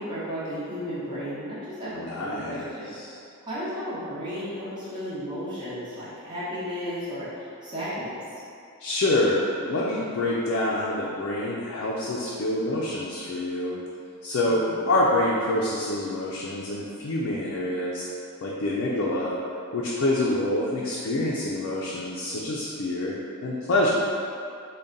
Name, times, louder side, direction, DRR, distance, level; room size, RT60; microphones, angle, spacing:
voice 1, 0.0-2.9 3.4-8.2 14.5-14.9, equal, 20° right, -11 dB, 1.0 m, -34 dB
voice 2, 1.9-3.1 8.8-13.8 14.2-18.1 18.4-19.4 19.7-23.1 23.4-23.9, left 1 dB, 60° left, -5 dB, 0.4 m, -26 dB
3.6 x 2.2 x 3.9 m, 2.5 s
head